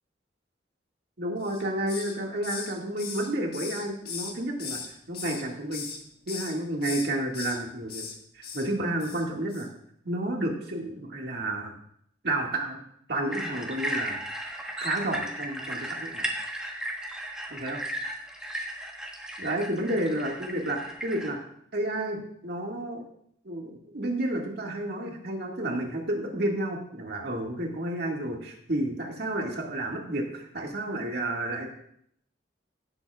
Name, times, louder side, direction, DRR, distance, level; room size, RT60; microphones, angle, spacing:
voice 1, 1.2-4.8 5.1-5.8 6.3-8.0 8.3-9.7 10.0-11.7 12.2-12.8 13.1-14.2 14.8-16.3 17.5-17.8 19.4-21.4 21.7-23.0 23.4-31.7, right 1 dB, 55° right, 0 dB, 1.9 m, -31 dB
Hiss, 1.4-2.2 2.4-4.9 5.1-6.0 6.3-6.5 6.8-7.6 7.9-8.1 8.4-8.7 9.0-9.2 9.5-9.7, left 5 dB, 55° left, 1.5 m, -38 dB
sound 1, 13.3-21.3, right 1 dB, 5° right, 1.2 m, -35 dB
17.0 x 7.7 x 2.4 m, 0.70 s
head